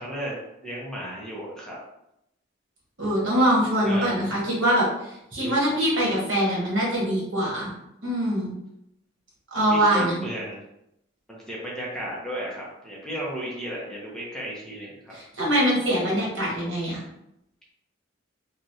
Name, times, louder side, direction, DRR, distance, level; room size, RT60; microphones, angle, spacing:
voice 1, 0.0-1.8 3.8-4.2 9.7-10.6 11.3-15.1, right 1 dB, 5° left, -5 dB, 0.7 m, -34 dB
voice 2, 3.0-7.7 8.0-8.5 9.5-10.2 15.1-17.0, right 1 dB, 80° right, -5 dB, 1.3 m, -23 dB
3.0 x 2.4 x 2.6 m, 0.82 s
head